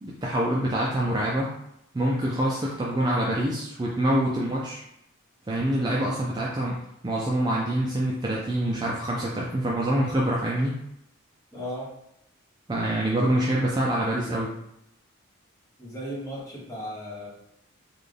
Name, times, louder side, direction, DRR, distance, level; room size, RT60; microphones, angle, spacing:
voice 1, 0.0-1.5 1.9-4.8 5.5-10.8 12.7-14.5, right 1 dB, 20° right, -4 dB, 0.3 m, -26 dB
voice 2, 11.5-11.9 15.8-17.3, equal, 15° left, -6 dB, 1.0 m, -35 dB
4.0 x 2.3 x 3.3 m, 0.78 s
head